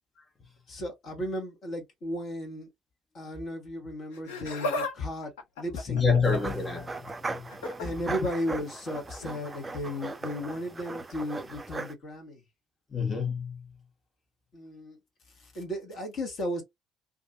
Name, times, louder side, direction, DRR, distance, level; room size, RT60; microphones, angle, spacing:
voice 1, 0.7-2.7 3.1-6.1 7.8-12.4 14.5-15.0 15.4-16.6, left 1 dB, 50° left, 1.3 m, -35 dB
Laughter, 4.1-4.9 5.2-6.6 7.5-7.9 9.2-9.4 10.3-10.4, left 2 dB, 75° left, 0.6 m, -34 dB
voice 2, 5.9-7.5 12.9-13.7, left 5 dB, 25° left, 1.1 m, -28 dB
sound 1, 6.3-11.9, right 3 dB, 25° right, 0.4 m, -38 dB
2.6 x 2.4 x 2.6 m
figure-of-eight pair, 50°, 0 cm